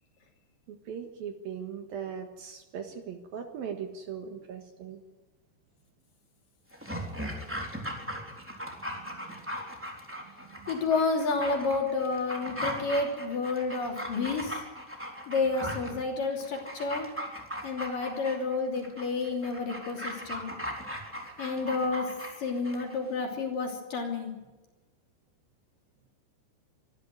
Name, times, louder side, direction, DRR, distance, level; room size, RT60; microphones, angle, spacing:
voice 1, 0.7-5.0 9.2-9.4 10.2-10.7 20.8-20.9, right 7 dB, 60° right, 5 dB, 2.9 m, -40 dB
Dog, 6.7-23.0 23.3-23.4, equal, 5° right, 2.8 m, -38 dB
voice 2, 10.7-14.6 15.3-17.1 17.6-20.5 21.4-22.1 22.4-24.3, left 4 dB, 50° left, 2 dB, 4.4 m, -30 dB
24.5 x 13.5 x 9.5 m, 1.1 s
omnidirectional pair, 5.3 m